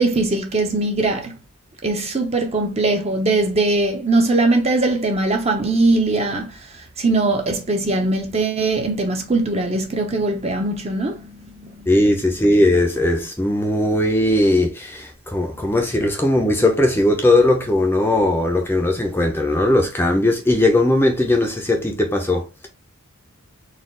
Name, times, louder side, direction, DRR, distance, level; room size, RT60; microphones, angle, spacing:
voice 1, 0.0-1.3 1.8-6.5 7.0-11.9, right 2 dB, 30° right, 0.7 m, -20 dB
voice 2, 11.9-22.7, left 1 dB, 10° left, 0.6 m, -18 dB
4.1 x 2.4 x 3.7 m
head